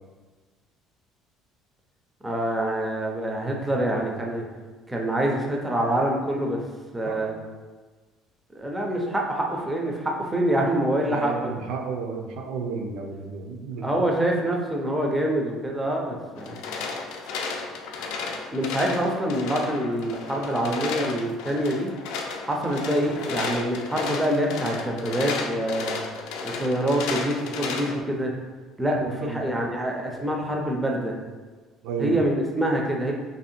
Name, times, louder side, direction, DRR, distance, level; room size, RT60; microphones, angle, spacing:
voice 1, 2.2-4.5 4.9-6.6 6.9-7.3 8.6-11.5 13.8-16.6 18.5-21.9 22.4-26.0 26.4-28.3 28.8-31.1 32.0-33.1, right 1 dB, 5° right, -1 dB, 0.5 m, -26 dB
voice 2, 11.1-13.9 29.0-29.4 31.8-32.1, right 4 dB, 65° right, 3 dB, 0.5 m, -32 dB
sound 1, 16.4-28.0, left 4 dB, 85° left, 0.5 m, -33 dB
3.0 x 2.7 x 4.2 m, 1.3 s
cardioid pair, 175°, 0 cm